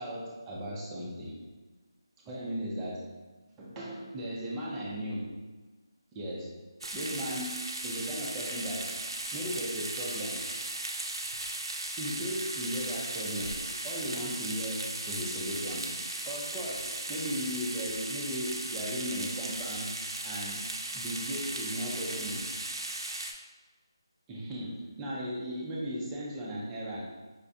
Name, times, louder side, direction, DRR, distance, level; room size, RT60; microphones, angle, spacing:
voice 1, 0.0-1.5 2.2-3.2 3.6-5.4 6.1-6.6 6.9-10.4 12.0-13.5 13.8-20.7 20.9-22.5 24.3-27.2, equal, 10° right, -5 dB, 0.5 m, -37 dB
sound 1, 6.8-23.3, right 2 dB, 75° right, 0.5 m, -37 dB
4.9 x 2.2 x 2.7 m, 1.3 s
figure-of-eight pair, 165°, 3 cm